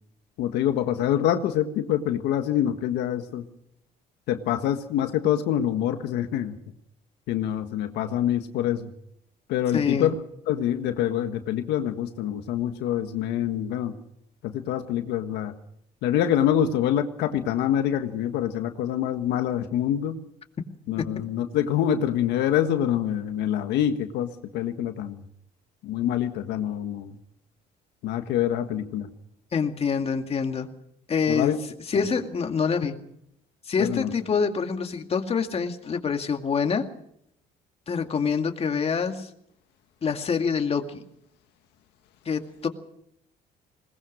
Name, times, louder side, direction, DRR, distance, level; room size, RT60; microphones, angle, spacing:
voice 1, 0.4-3.5 4.3-6.6 7.3-8.9 9.5-10.1 10.5-14.0 14.4-15.5 16.0-20.2 20.9-25.2 25.8-27.1 28.0-29.1 31.3-31.6 32.0-32.1 33.8-34.1, left 10 dB, 85° left, 7 dB, 1.5 m, -25 dB
voice 2, 9.7-10.1 29.5-30.7 31.1-31.5 31.9-33.0 33.7-36.9 37.9-39.3 40.0-41.0 42.3-42.7, left 6 dB, 35° left, 5 dB, 2.2 m, -26 dB
21.0 x 19.5 x 6.3 m, 0.73 s
cardioid pair, 110°, 17 cm